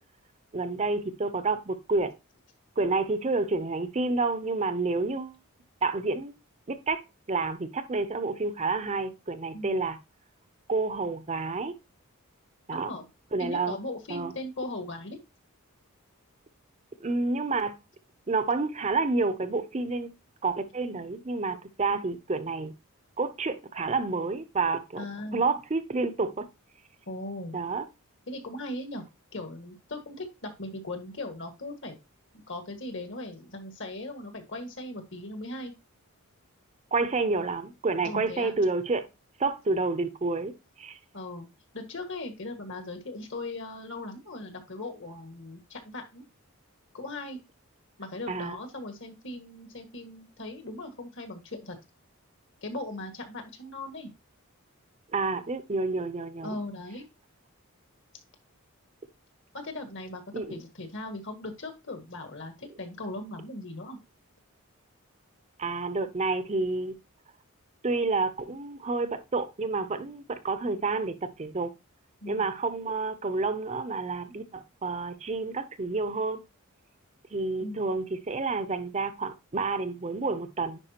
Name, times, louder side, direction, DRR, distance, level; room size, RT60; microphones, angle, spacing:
voice 1, 0.5-2.1 2.8-5.4 5.8-6.3 6.7-7.0 7.3-10.0 10.7-11.7 12.7-12.9 13.3-13.8 14.1-14.3 17.0-17.8 18.3-20.1 20.4-22.7 23.2-25.0 25.3-26.4 27.5-27.8 36.9-39.0 39.4-40.5 40.8-41.0 48.3-48.6 55.1-56.6 60.3-60.5 65.6-66.9 67.8-71.7 72.3-76.4 77.3-80.8, right 3 dB, 30° right, 0.6 m, -29 dB
voice 2, 12.7-13.1 13.4-15.2 21.9-22.0 25.0-25.5 27.1-27.5 28.3-29.0 29.3-32.0 32.5-35.7 38.0-38.6 41.1-41.5 41.7-46.2 46.9-47.4 48.0-51.8 52.6-54.1 56.4-57.0 59.5-60.2 60.5-64.0 72.2-72.5 77.6-77.8, left 2 dB, 55° left, 1.7 m, -38 dB
9.9 x 4.8 x 2.9 m
head